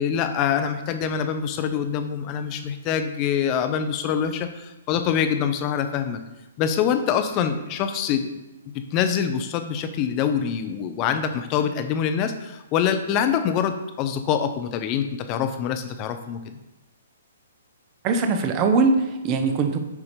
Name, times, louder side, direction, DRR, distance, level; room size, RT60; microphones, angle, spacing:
voice 1, 0.0-6.2 6.6-8.3 8.7-16.6, left 8 dB, 30° left, 8 dB, 0.6 m, -25 dB
voice 2, 18.0-19.8, right 4 dB, 30° right, 6 dB, 0.8 m, -21 dB
8.1 x 2.9 x 5.1 m, 0.99 s
hypercardioid pair, 145°, 0 cm